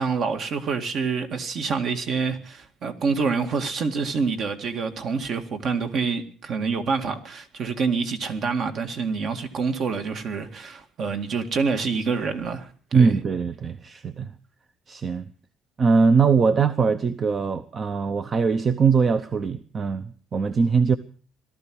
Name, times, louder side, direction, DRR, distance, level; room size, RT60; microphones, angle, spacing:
voice 1, 0.0-13.1, right 5 dB, 50° right, 7 dB, 2.0 m, -27 dB
voice 2, 12.9-14.3 14.9-15.3 15.8-21.0, right 5 dB, 35° right, 11 dB, 0.8 m, -21 dB
18.0 x 13.0 x 6.2 m, 0.43 s
cardioid pair, 130°, 0 cm